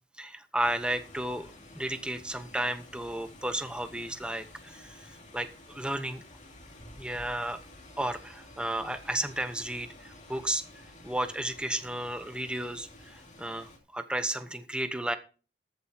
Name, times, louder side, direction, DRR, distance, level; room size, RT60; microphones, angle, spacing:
voice 1, 0.2-6.2 7.0-7.6 8.0-10.6 11.0-15.2, right 1 dB, 5° right, 9 dB, 0.9 m, -33 dB
sound 1, 0.6-13.8, left 1 dB, 45° left, 2.8 m, -51 dB
14.0 x 7.6 x 4.5 m, 0.37 s
head